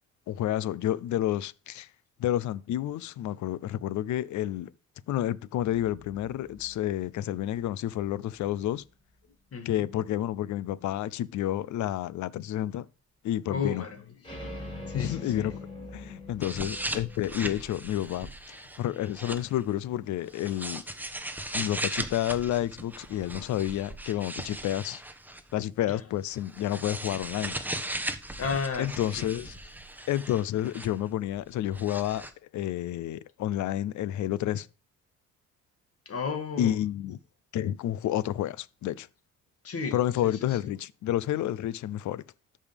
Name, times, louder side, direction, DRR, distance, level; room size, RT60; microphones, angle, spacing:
voice 1, 0.3-1.9 2.2-4.7 5.1-8.8 9.7-12.9 13.2-13.8 14.9-15.6 15.9-20.8 21.5-25.0 25.5-27.6 28.8-29.5 30.1-32.3 32.5-34.7 36.6-37.2 37.5-39.1 39.9-42.2, left 12 dB, 70° left, 0.6 m, -30 dB
sound 1, 8.4-8.5 14.2-17.8, left 1 dB, 15° left, 5.9 m, -44 dB
voice 2, 9.5-9.9 13.5-14.2 14.9-15.6 25.9-26.0 28.4-29.3 36.1-36.8 39.6-40.7, left 5 dB, 50° left, 2.1 m, -34 dB
sound 2, 16.4-19.6 20.3-25.5 26.2-31.1 31.3-32.3, right 1 dB, 5° right, 1.1 m, -38 dB
13.0 x 5.4 x 3.5 m
cardioid pair, 90°, 30 cm